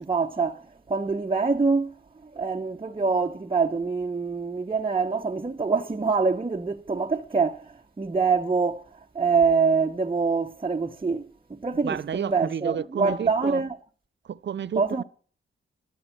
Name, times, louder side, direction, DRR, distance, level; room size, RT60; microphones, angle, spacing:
voice 1, 0.0-1.9 2.2-13.8 14.7-15.0, right 4 dB, 25° right, 1.0 m, -25 dB
voice 2, 11.8-13.6 14.2-15.0, right 8 dB, 60° right, 0.6 m, -31 dB
13.0 x 10.5 x 6.1 m
cardioid pair, 65°, 21 cm